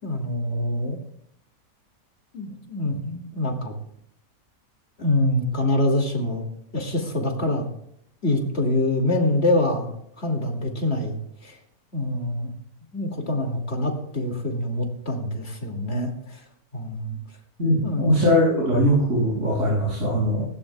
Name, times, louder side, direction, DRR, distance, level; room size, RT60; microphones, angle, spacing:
voice 1, 0.0-1.0 2.3-3.7 5.0-6.4 6.7-7.7 8.2-11.6 11.9-12.5 12.9-16.4 16.7-17.2 17.8-18.2, left 1 dB, 45° left, 2 dB, 2.8 m, -25 dB
voice 2, 17.6-20.5, equal, 60° right, -7 dB, 7.0 m, -21 dB
19.0 x 16.5 x 2.4 m, 0.72 s
omnidirectional pair, 1.6 m